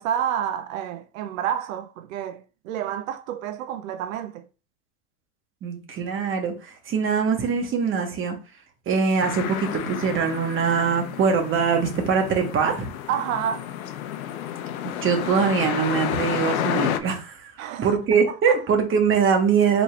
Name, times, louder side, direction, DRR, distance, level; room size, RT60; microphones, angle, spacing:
voice 1, 0.0-4.5 13.1-13.6 17.6-18.0 18.3-18.6, right 9 dB, 65° right, 0.6 m, -29 dB
voice 2, 5.6-8.3 8.9-12.9 14.8-17.5 17.8-19.8, right 6 dB, 30° right, 1.3 m, -22 dB
sound 1, 9.2-17.0, left 10 dB, 75° left, 0.7 m, -30 dB
4.7 x 4.0 x 2.4 m
hypercardioid pair, 110°, 42 cm